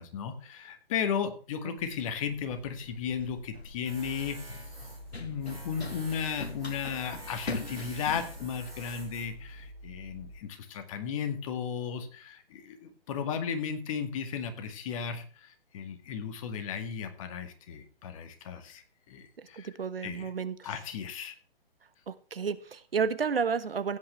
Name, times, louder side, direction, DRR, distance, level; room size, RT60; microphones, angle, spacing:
voice 1, 0.0-4.4 5.1-19.7 20.0-20.3 20.6-21.4, left 7 dB, 35° left, 7 dB, 1.9 m, -35 dB
Run, 1.8-9.7, left 3 dB, 80° left, 1.4 m, -44 dB
Tools, 3.9-10.4, right 1 dB, 10° right, 7.7 m, -45 dB
voice 2, 19.4-20.7 22.1-24.0, right 6 dB, 65° right, 14 dB, 1.2 m, -31 dB
16.0 x 9.1 x 3.2 m, 0.40 s
figure-of-eight pair, 135°, 31 cm